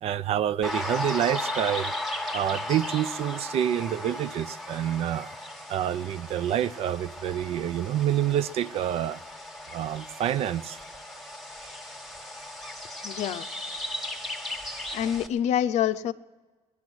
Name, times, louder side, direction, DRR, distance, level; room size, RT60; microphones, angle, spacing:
voice 1, 0.0-1.9 2.3-5.3 5.7-9.2 9.7-10.8, right 11 dB, 55° right, 0.5 m, -27 dB
sound 1, 0.6-15.3, left 1 dB, ahead, 1.2 m, -36 dB
voice 2, 13.0-13.5 14.9-16.1, left 10 dB, 70° left, 0.6 m, -26 dB
18.5 x 12.0 x 6.1 m
cardioid pair, 140°, 12 cm